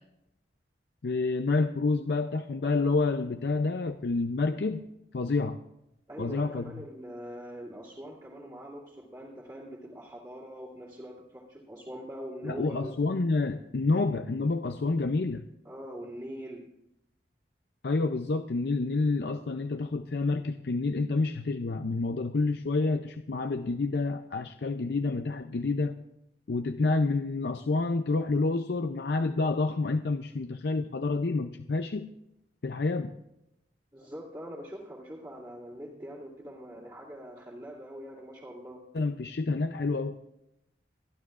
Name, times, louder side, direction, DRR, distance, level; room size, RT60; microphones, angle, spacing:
voice 1, 1.0-4.8 5.1-5.6 6.2-6.8 12.4-15.4 17.8-26.0 26.5-32.1 32.6-33.1 38.9-40.2, left 3 dB, 60° left, 6 dB, 0.5 m, -28 dB
voice 2, 6.1-12.9 15.6-16.7 33.9-38.8, equal, 20° right, -8 dB, 2.3 m, -43 dB
29.0 x 11.5 x 2.4 m, 0.86 s
head